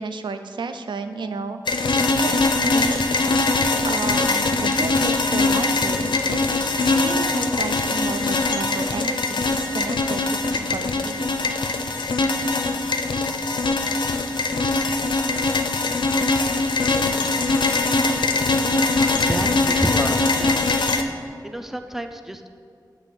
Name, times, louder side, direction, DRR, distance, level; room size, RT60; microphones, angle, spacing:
voice 1, 0.0-1.6 1.9-3.2 3.8-11.1, right 4 dB, 85° right, 9 dB, 0.4 m, -32 dB
sound 1, 1.7-21.0, left 3 dB, 80° left, 0.4 m, -22 dB
voice 2, 19.2-20.9 21.4-22.5, right 1 dB, 5° right, 7 dB, 0.4 m, -29 dB
7.8 x 3.5 x 5.9 m, 2.3 s
wide cardioid pair, 70°, 8 cm